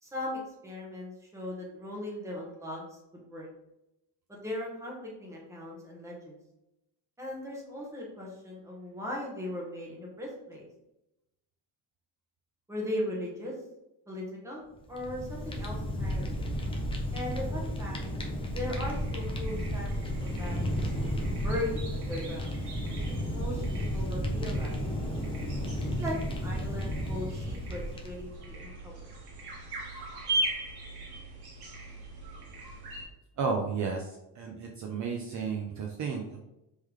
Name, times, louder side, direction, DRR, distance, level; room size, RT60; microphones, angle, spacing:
voice 1, 0.0-3.5 4.3-6.4 7.2-10.7 12.7-13.5 14.1-16.4 17.1-18.0 18.5-20.9 21.4-22.5 23.1-24.9 26.0-26.1 26.4-29.1, left 1 dB, 5° right, -3 dB, 0.9 m, -38 dB
Fire, 14.8-28.4, equal, 15° left, 0.4 m, -33 dB
sound 1, 18.7-33.0, right 2 dB, 70° right, 1.3 m, -40 dB
voice 2, 33.4-36.5, right 5 dB, 45° right, 1 dB, 0.5 m, -33 dB
3.7 x 3.2 x 3.1 m, 0.90 s
cardioid pair, 160°, 42 cm